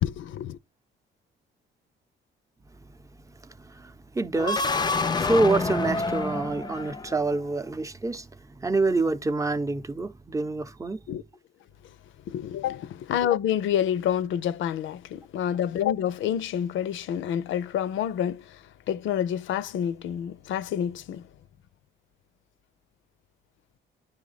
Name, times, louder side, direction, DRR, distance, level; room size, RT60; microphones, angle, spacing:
voice 1, 0.0-0.6 11.1-11.2 12.3-21.2, left 10 dB, 75° left, 0.6 m, -28 dB
voice 2, 3.2-11.0, right 2 dB, 15° right, 0.7 m, -27 dB
sound 1, 4.3-7.3, left 3 dB, 20° left, 0.5 m, -28 dB
10.0 x 3.5 x 4.0 m
cardioid pair, 90°, 20 cm